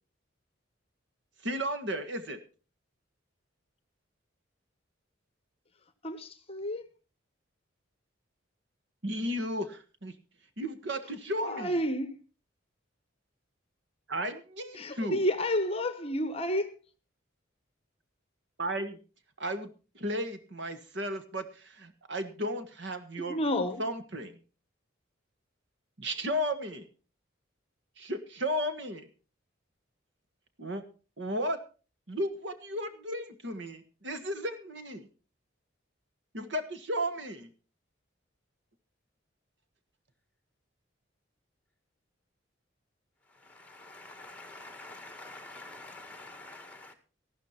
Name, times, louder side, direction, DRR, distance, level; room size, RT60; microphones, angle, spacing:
voice 1, 1.4-2.4 9.0-10.1 10.6-11.7 14.1-15.2 18.6-19.0 19.4-19.7 19.9-23.4 23.8-24.4 26.0-26.9 28.0-29.1 30.6-30.8 31.2-31.6 32.1-35.1 36.3-37.5, equal, 60° right, 1.5 m, -34 dB
voice 2, 6.0-6.9 11.4-12.2 14.8-16.7 23.3-23.8, left 1 dB, 30° left, 1.0 m, -30 dB
voice 3, 43.3-46.9, left 2 dB, 5° left, 2.0 m, -47 dB
14.0 x 12.5 x 4.3 m
head